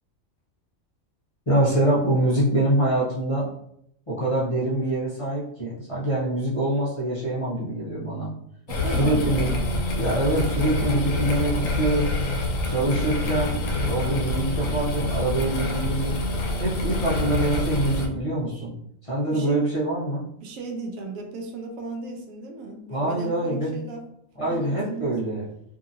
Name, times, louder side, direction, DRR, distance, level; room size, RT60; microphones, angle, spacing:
voice 1, 1.5-3.5 4.1-8.3 9.0-9.7 9.9-12.1 12.7-16.1 16.6-18.7 19.1-20.2 22.9-23.8 24.4-25.4, right 1 dB, 30° left, -8 dB, 0.7 m, -25 dB
sound 1, 8.7-18.1, left 2 dB, 75° left, 1.0 m, -26 dB
voice 2, 8.7-9.6 19.3-19.6 20.4-24.1 24.4-25.2, right 3 dB, 80° right, 2 dB, 1.0 m, -36 dB
2.8 x 2.7 x 2.5 m, 0.72 s
omnidirectional pair, 1.4 m